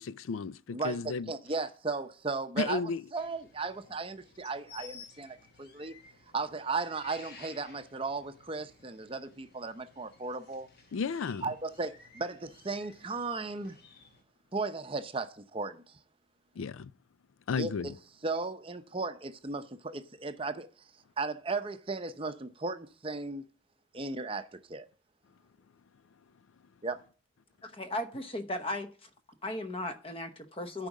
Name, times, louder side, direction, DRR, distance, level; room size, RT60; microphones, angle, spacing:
voice 1, 0.0-1.3 2.6-3.0 10.9-11.5 16.6-16.9 17.5-18.0, left 5 dB, 80° left, 0.4 m, -33 dB
voice 2, 0.7-2.8 3.1-5.9 6.3-10.7 11.4-13.8 14.5-15.8 17.6-17.9 18.2-20.7 21.2-23.4 23.9-24.9 26.8-27.0, right 3 dB, 25° right, 0.6 m, -36 dB
sound 1, 3.2-14.2, left 4 dB, 50° left, 1.5 m, -56 dB
voice 3, 27.6-29.1 29.4-30.9, left 1 dB, 25° left, 0.9 m, -36 dB
10.0 x 5.0 x 7.3 m
head